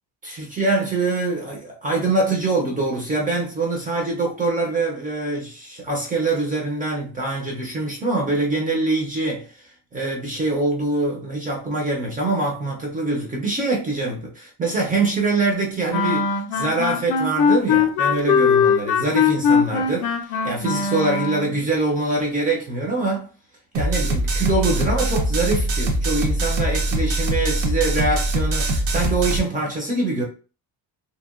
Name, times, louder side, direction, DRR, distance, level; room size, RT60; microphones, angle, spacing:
voice 1, 0.2-23.3 23.7-30.2, right 2 dB, 20° right, 0.4 m, -24 dB
sound 1, 15.9-21.6, left 6 dB, 65° left, 0.5 m, -20 dB
sound 2, 23.7-29.4, right 1 dB, 80° right, 0.7 m, -22 dB
2.8 x 2.1 x 2.3 m
cardioid pair, 175°, 41 cm